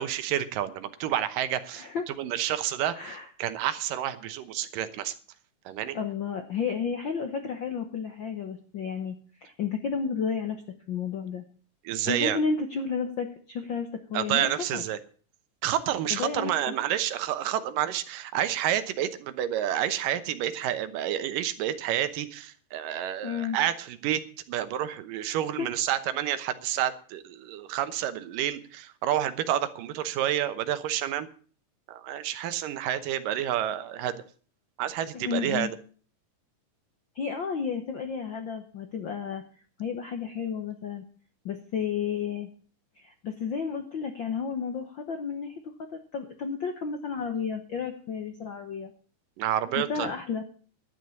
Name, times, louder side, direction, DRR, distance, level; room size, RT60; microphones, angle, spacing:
voice 1, 0.0-5.1 5.7-6.0 11.8-12.4 14.1-15.0 15.6-24.2 24.5-31.3 31.9-34.2 34.8-35.7 49.4-50.1, right 11 dB, 90° right, 12 dB, 2.7 m, -29 dB
voice 2, 1.7-2.0 2.9-3.3 5.9-10.6 10.9-11.4 12.1-14.8 16.1-16.5 23.2-23.6 25.6-25.7 35.1-35.7 37.1-39.4 39.8-41.0 41.4-42.5 43.0-45.6 45.9-48.9 49.7-50.4, left 6 dB, 70° left, 6 dB, 1.1 m, -32 dB
12.0 x 9.5 x 7.1 m, 0.43 s
omnidirectional pair, 3.7 m